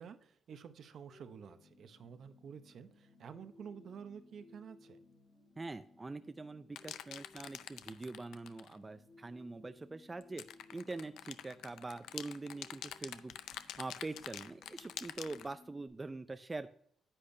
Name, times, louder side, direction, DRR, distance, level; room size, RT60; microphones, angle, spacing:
voice 1, 0.0-5.0, right 7 dB, 55° right, 10 dB, 0.7 m, -50 dB
sound 1, 1.0-15.9, left 2 dB, 60° left, 3.1 m, -63 dB
voice 2, 5.6-10.4 10.7-13.3 13.8-16.7, right 3 dB, 20° right, 10 dB, 0.4 m, -44 dB
sound 2, 6.8-8.8 10.2-15.5, left 11 dB, 85° left, 0.4 m, -46 dB
9.9 x 8.6 x 2.6 m, 0.66 s
cardioid pair, 115°, 0 cm